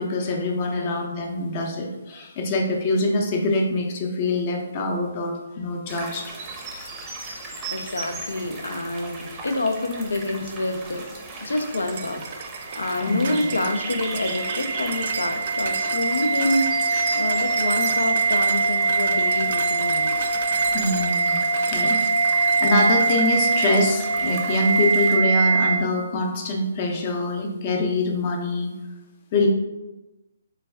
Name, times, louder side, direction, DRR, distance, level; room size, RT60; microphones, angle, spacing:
voice 1, 0.0-6.3 7.8-7.9 12.8-13.6 16.9-17.4 20.7-28.7 29.3-29.5, left 2 dB, 35° left, 2 dB, 0.6 m, -25 dB
voice 2, 0.7-1.2 7.7-11.0 11.4-12.3 12.8-16.8 17.1-20.1, left 2 dB, 80° left, 6 dB, 0.5 m, -27 dB
sound 1, 5.9-25.2, right 3 dB, 20° right, 0.6 m, -37 dB
sound 2, 11.7-23.3 23.6-23.9, right 6 dB, 50° right, 0.3 m, -35 dB
sound 3, 12.7-25.8, right 4 dB, 90° right, 0.6 m, -23 dB
4.0 x 2.3 x 3.3 m, 1.1 s
figure-of-eight pair, 140°, 0 cm